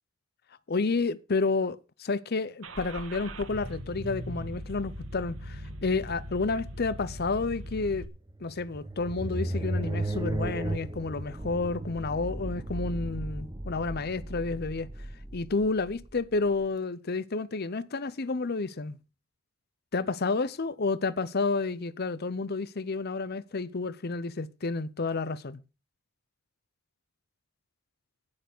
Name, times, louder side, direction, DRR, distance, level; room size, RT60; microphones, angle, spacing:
voice 1, 0.7-8.1 8.4-14.9 15.3-19.0 19.9-25.6, left 3 dB, 50° left, 0.7 m, -30 dB
Car / Engine starting, 2.6-8.0, equal, 70° right, 2.1 m, -40 dB
sound 1, 8.3-16.6, right 1 dB, 20° right, 1.0 m, -35 dB
17.0 x 7.0 x 6.1 m
head